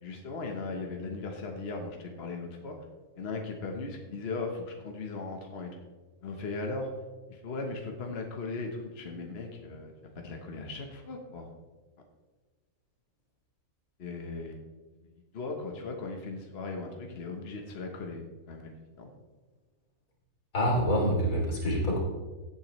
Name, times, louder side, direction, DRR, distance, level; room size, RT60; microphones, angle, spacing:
voice 1, 0.0-2.8 3.2-5.8 6.2-6.9 7.3-11.5 14.0-14.6 15.3-19.1, left 3 dB, 50° left, 2 dB, 1.3 m, -38 dB
voice 2, 20.5-22.0, equal, 85° left, -2 dB, 3.6 m, -26 dB
16.0 x 8.7 x 3.1 m, 1.3 s
omnidirectional pair, 1.4 m